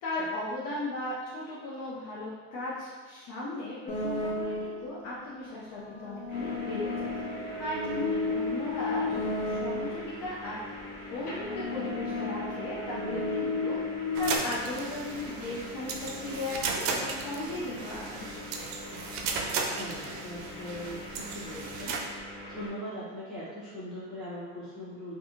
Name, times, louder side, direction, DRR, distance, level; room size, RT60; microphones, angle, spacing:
voice 1, 0.0-7.3 7.6-10.6 11.1-13.8 14.1-18.3, left 2 dB, 65° left, -7 dB, 0.7 m, -36 dB
sound 1, 3.9-5.0 5.7-10.2 11.0-14.4, left 3 dB, 20° left, 0.4 m, -33 dB
sound 2, 6.3-22.7, left 2 dB, 85° left, 1.2 m, -43 dB
voice 2, 12.9-13.3 19.8-22.0 22.5-25.2, equal, ahead, -13 dB, 0.8 m, -40 dB
sound 3, 14.1-22.0, right 4 dB, 75° right, 0.5 m, -35 dB
2.7 x 2.3 x 2.6 m, 1.5 s
supercardioid pair, 105°, 34 cm